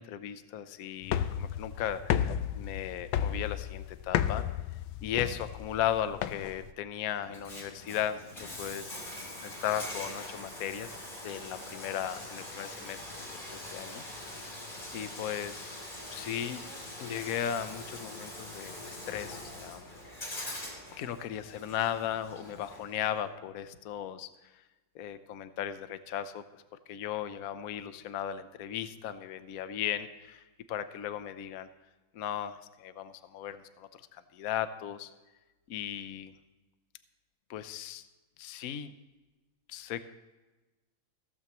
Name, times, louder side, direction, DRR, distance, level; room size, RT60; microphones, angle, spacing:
voice 1, 0.0-4.4 5.0-9.0 9.4-14.4 14.9-15.8 16.1-16.6 17.0-19.9 21.0-24.3 24.9-26.6 26.9-30.4 30.7-31.7 32.1-35.1 35.7-36.3 37.5-38.0 38.4-38.9 39.7-40.0, left 10 dB, 60° left, 11 dB, 1.0 m, -36 dB
sound 1, 1.0-6.7, left 10 dB, 90° left, 1.4 m, -33 dB
Bathtub (filling or washing), 7.2-23.2, left 1 dB, 25° left, 2.7 m, -43 dB
16.0 x 14.5 x 3.0 m, 1.2 s
omnidirectional pair, 2.1 m